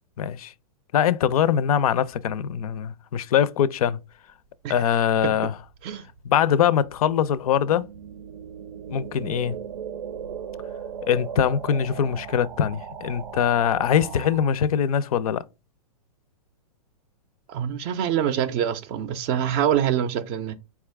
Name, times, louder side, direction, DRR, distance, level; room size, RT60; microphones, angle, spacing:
voice 1, 0.2-0.5 0.9-4.0 4.7-5.6 6.2-7.8 8.9-9.6 11.0-15.4, left 9 dB, 70° left, 0.4 m, -22 dB
sound 1, 5.5-14.5, right 7 dB, 85° right, 0.6 m, -38 dB
voice 2, 17.5-20.5, right 9 dB, 30° right, 0.4 m, -25 dB
4.3 x 2.4 x 3.3 m
hypercardioid pair, 135°, 19 cm